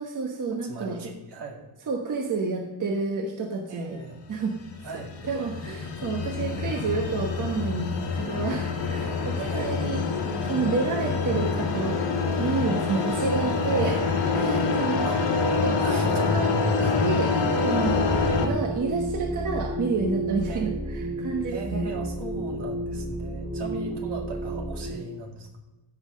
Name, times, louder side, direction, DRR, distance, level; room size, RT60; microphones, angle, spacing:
voice 1, 0.0-1.0 1.9-4.0 4.3-4.5 4.8-4.9 5.2-10.0 10.4-12.0 12.4-14.0 14.3-15.2 15.6-16.5 17.0-17.3 17.6-18.0 18.4-21.9, right 4 dB, 45° right, 2 dB, 1.2 m, -29 dB
voice 2, 0.6-1.6 3.7-4.2 4.8-5.1 9.4-10.0 12.9-13.1 15.0-15.4 15.8-16.4 16.8-17.0 18.4-18.5 20.5-20.8 21.5-25.5, right 3 dB, 70° right, 1 dB, 2.3 m, -38 dB
sound 1, 4.4-18.5, left 4 dB, 80° left, 2.2 m, -26 dB
sound 2, 17.8-25.0, right 1 dB, 15° right, 2.2 m, -32 dB
15.0 x 5.7 x 5.1 m, 1.1 s
cardioid pair, 130°, 42 cm